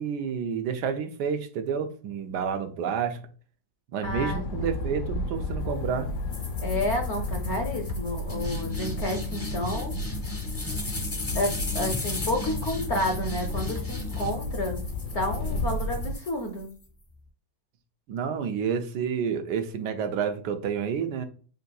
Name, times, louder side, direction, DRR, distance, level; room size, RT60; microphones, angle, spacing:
voice 1, 0.0-3.2 3.9-6.1 18.1-21.3, right 7 dB, 85° right, 7 dB, 1.2 m, -29 dB
sound 1, 4.0-16.2, left 2 dB, 85° left, 1.2 m, -32 dB
voice 2, 4.0-4.7 6.6-10.0 11.3-14.9 15.1-16.7, left 1 dB, 60° left, 3 dB, 0.8 m, -30 dB
sound 2, 6.3-16.8, left 2 dB, 20° left, 0.6 m, -36 dB
7.4 x 2.7 x 2.2 m, 0.41 s
omnidirectional pair, 1.8 m